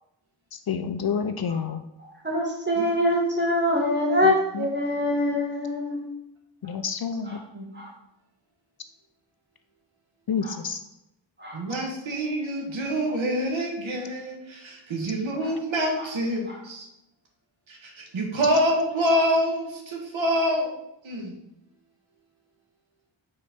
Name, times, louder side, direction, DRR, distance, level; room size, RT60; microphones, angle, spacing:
voice 1, 0.5-1.8 4.2-4.7 6.6-7.4 10.3-10.8, left 6 dB, 50° left, 8 dB, 0.5 m, -29 dB
voice 2, 2.2-6.1 7.2-7.4 7.7-7.9 10.4-10.5 11.4-11.6 15.4-15.5 16.0-16.1 16.5-16.6, left 1 dB, 25° right, -2 dB, 1.9 m, -24 dB
voice 3, 11.5-16.9 17.7-20.7 21.0-21.4, equal, 80° right, 1 dB, 1.5 m, -26 dB
5.5 x 3.9 x 5.1 m, 0.85 s
wide cardioid pair, 120°, 47 cm